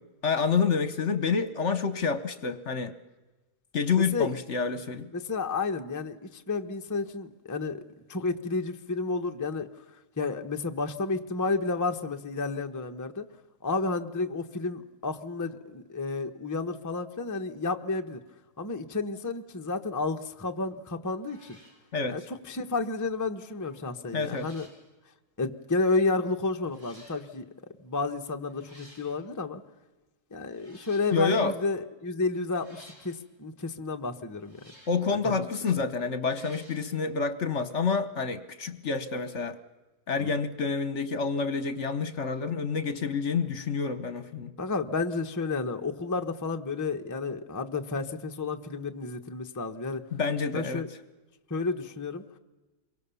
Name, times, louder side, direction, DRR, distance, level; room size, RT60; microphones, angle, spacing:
voice 1, 0.2-2.9 3.7-5.1 21.9-22.3 24.1-24.5 31.1-31.5 34.9-39.6 40.1-44.5 50.1-50.9, left 5 dB, 55° left, 13 dB, 1.2 m, -28 dB
voice 2, 4.0-4.3 5.1-7.8 8.1-9.7 10.2-13.3 13.6-18.2 18.6-21.6 22.1-22.2 22.5-24.7 25.4-27.4 27.8-29.6 30.3-34.6 35.2-35.4 35.8-35.9 40.2-40.4 44.6-50.0 50.5-50.9 51.5-52.2, left 3 dB, 15° left, 6 dB, 0.8 m, -31 dB
sound 1, 20.7-20.9 21.2-21.8 23.5-23.8 24.1-24.8 25.8-25.9 26.6-27.2 28.4-29.2 30.5-31.3 32.5-33.2 34.3-35.1 36.2-36.9, equal, 50° right, 6.8 m, -55 dB
27.0 x 23.0 x 7.0 m, 1.2 s
omnidirectional pair, 1.7 m